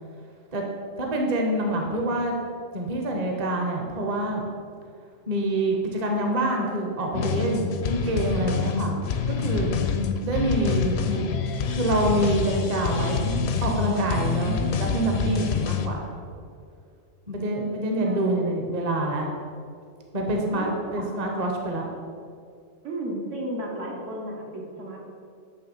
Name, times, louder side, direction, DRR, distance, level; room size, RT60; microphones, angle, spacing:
voice 1, 1.0-2.3 2.7-4.4 5.3-9.0 9.3-9.7 10.2-11.2 11.7-13.3 13.6-16.0 17.3-19.3 20.1-21.9, right 1 dB, 35° right, 1 dB, 0.8 m, -26 dB
sound 1, 7.1-15.9, left 5 dB, 65° left, 0.7 m, -26 dB
voice 2, 17.9-18.6 20.5-20.8 22.8-25.0, right 1 dB, 70° right, -2 dB, 1.6 m, -34 dB
9.3 x 3.2 x 5.5 m, 2.3 s
omnidirectional pair, 1.3 m